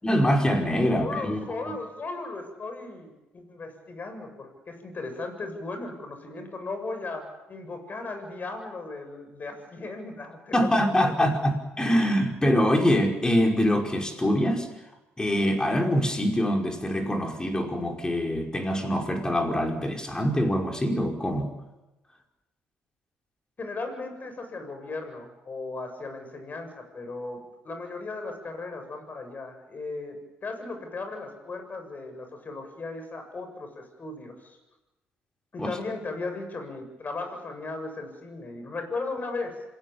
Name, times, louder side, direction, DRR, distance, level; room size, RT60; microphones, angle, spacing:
voice 1, 0.0-1.4 10.5-14.7 15.2-21.5 35.6-35.7, equal, 15° left, 3 dB, 5.3 m, -24 dB
voice 2, 0.9-11.1 23.6-34.6 35.5-39.6, left 3 dB, 40° left, 7 dB, 7.5 m, -36 dB
27.0 x 17.5 x 8.7 m, 1.0 s
supercardioid pair, 80°, 5 cm